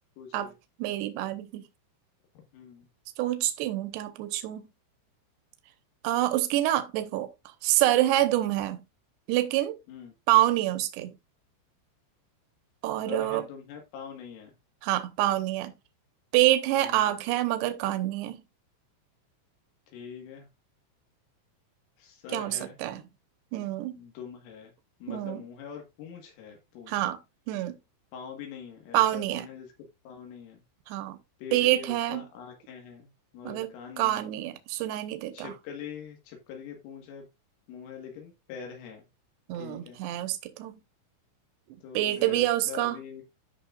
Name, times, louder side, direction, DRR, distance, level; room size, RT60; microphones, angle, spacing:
voice 1, 0.2-0.5 2.4-2.9 9.9-10.2 13.1-14.5 16.8-17.2 19.9-20.5 22.0-22.8 24.0-24.7 25.0-27.1 28.1-29.7 30.1-30.6 31.4-33.1 33.3-34.3 35.3-37.3 37.7-39.0 39.6-40.0 41.8-43.2, left 7 dB, 80° left, 4.1 m, -43 dB
voice 2, 0.8-1.7 3.2-4.6 6.0-8.8 9.3-9.8 10.3-11.2 12.8-13.5 14.8-15.7 16.3-18.4 22.3-23.0 23.5-24.0 25.1-25.4 26.9-27.2 27.5-27.8 28.9-29.5 30.9-31.2 31.5-32.2 33.4-35.5 39.5-40.8 41.9-43.0, right 14 dB, 80° right, 2.6 m, -27 dB
13.0 x 5.5 x 2.4 m
omnidirectional pair, 5.8 m